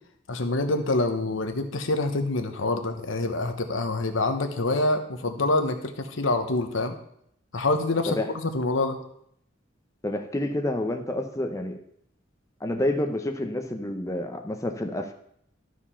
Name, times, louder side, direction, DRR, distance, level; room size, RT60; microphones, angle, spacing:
voice 1, 0.3-6.9 7.5-8.2 8.4-9.0, left 2 dB, 80° left, 6 dB, 1.1 m, -26 dB
voice 2, 10.0-11.8 12.6-15.1, left 1 dB, 15° left, 4 dB, 0.7 m, -28 dB
12.0 x 4.9 x 5.7 m, 0.72 s
head